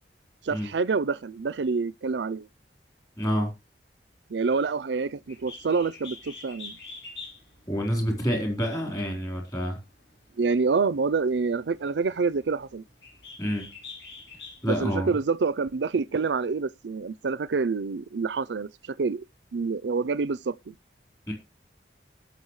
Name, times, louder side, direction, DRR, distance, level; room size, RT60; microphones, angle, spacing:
voice 1, 0.4-2.5 4.3-6.8 10.4-12.8 14.7-19.2 19.5-20.8, right 4 dB, 80° right, 0.5 m, -27 dB
voice 2, 3.2-3.5 7.7-9.8 13.4-13.7 14.6-15.1 21.3-21.4, equal, 20° left, 4.0 m, -28 dB
Bird, 5.3-14.8, left 4 dB, 75° left, 3.9 m, -46 dB
19.0 x 6.5 x 3.2 m
head